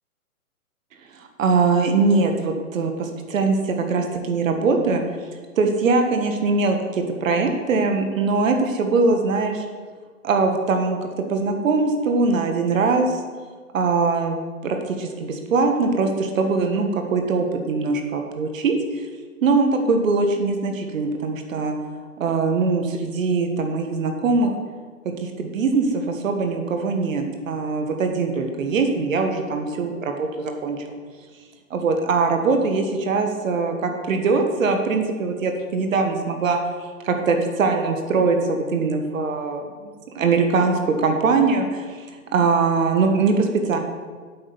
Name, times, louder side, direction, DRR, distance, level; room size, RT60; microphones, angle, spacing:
voice 1, 1.1-5.0 5.6-9.6 10.2-11.0 11.3-13.2 13.7-19.0 19.4-21.8 22.2-24.5 25.2-30.8 31.7-36.6 37.0-42.1 42.3-43.8, right 4 dB, 65° right, 4 dB, 1.5 m, -22 dB
8.5 x 6.0 x 7.1 m, 1.5 s
hypercardioid pair, 140°, 43 cm